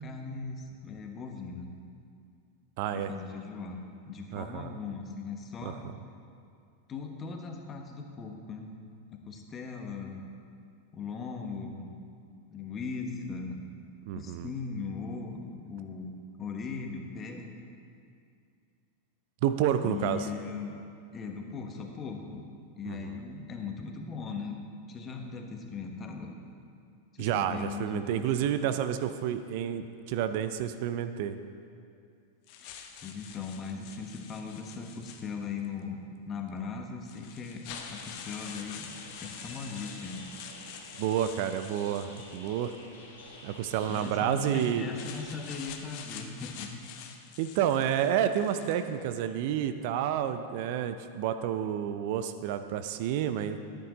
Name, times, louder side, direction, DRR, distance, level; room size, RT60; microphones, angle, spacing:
voice 1, 0.0-1.7 2.9-5.8 6.9-8.7 9.1-10.3 10.9-11.9 12.5-16.1 16.4-17.5 19.8-20.8 21.1-22.5 22.8-24.6 24.9-26.4 27.1-28.3 32.6-32.8 33.0-37.7 37.9-38.9 39.2-40.3 43.9-46.7, left 5 dB, 30° left, 3 dB, 1.1 m, -39 dB
voice 2, 2.8-3.1 4.3-4.8 5.6-5.7 14.1-14.5 19.4-20.3 22.9-23.1 27.2-31.4 41.0-42.7 43.4-44.9 47.4-53.6, right 10 dB, 55° right, 10 dB, 0.4 m, -30 dB
sound 1, 32.5-35.7 36.5-36.6 37.0-42.8 43.8-48.9, left 7 dB, 50° left, 0.8 m, -47 dB
sound 2, 37.7-45.7, left 2 dB, 75° left, 2.2 m, -50 dB
10.0 x 9.0 x 4.0 m, 2.4 s
figure-of-eight pair, 95°, 0 cm